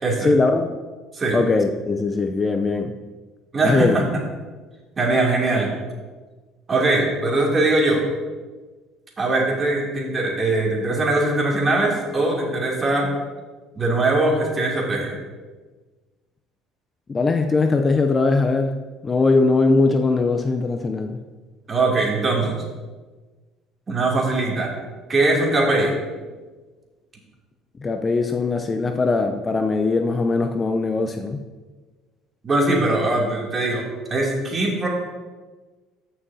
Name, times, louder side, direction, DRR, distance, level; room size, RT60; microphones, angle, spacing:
voice 1, 0.2-0.7 1.3-2.9 3.6-4.0 17.1-21.2 27.8-31.4, left 3 dB, 25° left, 5 dB, 0.6 m, -20 dB
voice 2, 3.5-4.0 5.0-5.7 6.7-8.0 9.2-13.1 13.7-15.2 21.7-22.6 23.9-24.7 25.1-25.9 32.4-34.9, right 2 dB, 30° right, -2 dB, 2.7 m, -21 dB
14.5 x 6.2 x 2.8 m, 1.3 s
supercardioid pair, 90°, 0 cm